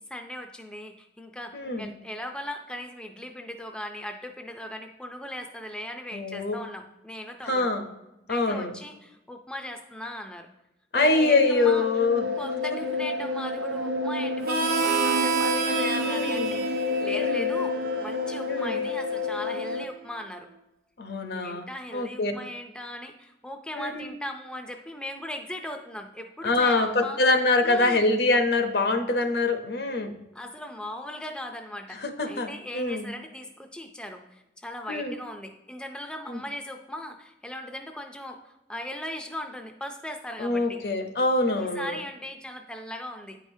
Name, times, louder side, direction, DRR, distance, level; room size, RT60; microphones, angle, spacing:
voice 1, 0.1-7.7 8.3-10.5 11.1-11.8 12.4-20.5 21.3-27.2 27.6-28.1 30.3-32.0 32.3-40.8 41.5-43.5, left 1 dB, 5° left, 4 dB, 0.4 m, -38 dB
voice 2, 1.5-1.9 6.1-6.6 7.4-7.9 8.3-8.8 10.9-12.3 16.0-16.6 17.1-17.5 18.5-18.8 21.0-21.7 21.9-22.3 23.7-24.0 26.4-30.2 32.0-33.1 34.9-35.1 36.3-36.4 40.4-42.0, left 2 dB, 65° left, 6 dB, 0.7 m, -24 dB
sound 1, 10.9-19.8, left 3 dB, 85° right, 0.6 m, -30 dB
Harmonica, 14.4-19.7, right 4 dB, 55° right, 0.8 m, -30 dB
9.6 x 4.9 x 2.7 m, 0.93 s
head